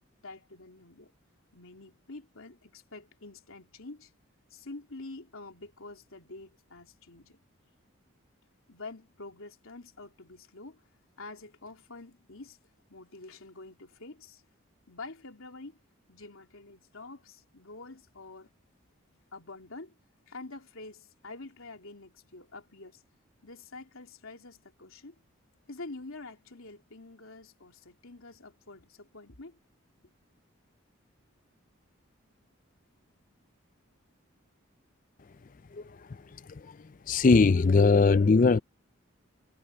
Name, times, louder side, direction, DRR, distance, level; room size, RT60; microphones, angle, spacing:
voice 1, 0.2-1.1 1.5-4.1 4.5-7.4 8.7-10.8 11.2-12.6 12.9-14.4 14.9-15.8 16.1-18.5 19.3-19.9 20.3-23.0 23.4-25.1 25.7-29.6, left 3 dB, 75° left, 3.1 m, -47 dB
voice 2, 37.1-38.6, left 4 dB, 40° left, 0.4 m, -20 dB
head